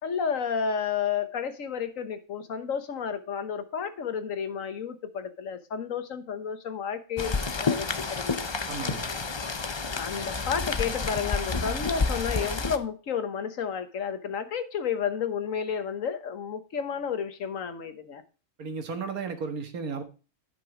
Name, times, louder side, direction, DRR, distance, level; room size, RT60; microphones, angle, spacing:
voice 1, 0.0-8.5 9.9-18.2, left 7 dB, 65° left, 1.5 m, -31 dB
Rain, 7.2-12.8, left 4 dB, 35° left, 0.4 m, -29 dB
voice 2, 8.7-9.1 18.6-20.0, right 5 dB, 80° right, 2.0 m, -34 dB
11.0 x 6.1 x 4.9 m
omnidirectional pair, 1.5 m